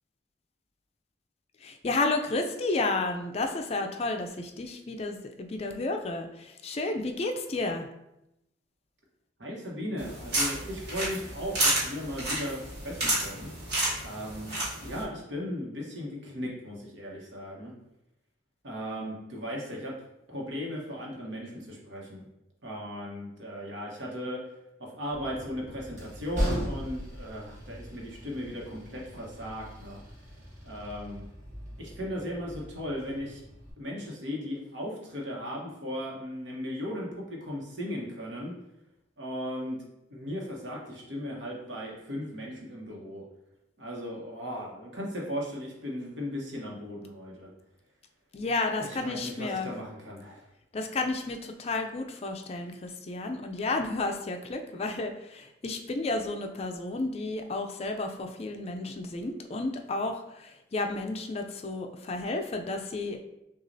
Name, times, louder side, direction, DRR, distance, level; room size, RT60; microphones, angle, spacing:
voice 1, 1.6-7.9 48.3-49.7 50.7-63.2, left 2 dB, 35° left, 5 dB, 0.4 m, -32 dB
voice 2, 9.4-13.5 14.0-14.5 14.8-17.7 18.6-19.9 20.3-22.2 22.6-24.4 24.8-30.0 30.6-31.3 31.8-33.4 33.8-38.5 39.2-39.8 40.1-43.2 43.8-47.5 48.8-50.5, equal, 80° right, -3 dB, 1.1 m, -37 dB
sound 1, 10.0-15.0, right 1 dB, 60° right, 1.5 m, -31 dB
Train, 25.1-33.7, equal, 40° right, 1.1 m, -38 dB
6.1 x 2.4 x 2.6 m, 0.87 s
head